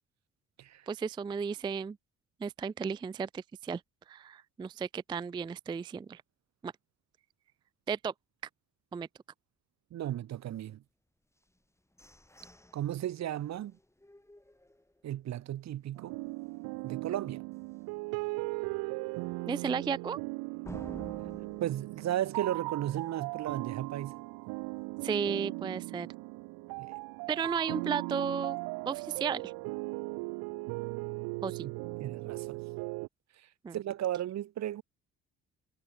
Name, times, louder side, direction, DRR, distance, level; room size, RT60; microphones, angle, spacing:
voice 1, 0.9-2.0 2.4-3.8 4.1-6.2 6.6-6.7 7.9-8.1 8.9-9.1 19.5-20.2 25.0-26.1 27.3-28.6 28.9-29.5 31.4-31.7 33.6-33.8, right 6 dB, 15° right, 0.3 m, -34 dB
voice 2, 9.9-10.8 12.7-13.7 15.0-16.2 16.8-17.4 21.6-24.1 26.8-26.9 31.6-31.7 32.0-32.6 33.7-34.8, right 12 dB, 50° right, 0.8 m, -35 dB
sound 1, 11.4-15.3 15.7-15.8 16.2-16.6 17.0-17.1 17.6-17.7 20.6-23.3, left 1 dB, 10° left, 3.7 m, -53 dB
sound 2, 16.0-33.1, right 27 dB, 80° right, 2.1 m, -38 dB
hypercardioid pair, 55°, 35 cm